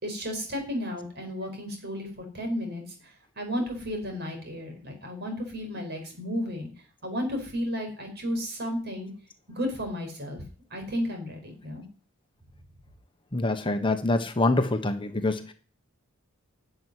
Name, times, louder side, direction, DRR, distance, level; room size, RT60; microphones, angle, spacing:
voice 1, 0.0-2.8 3.4-6.7 7.0-9.1 9.5-10.4 10.7-11.9, equal, 50° right, 4 dB, 5.3 m, -33 dB
voice 2, 13.3-15.5, left 2 dB, 25° left, 7 dB, 1.1 m, -25 dB
12.0 x 7.9 x 9.9 m, 0.41 s
head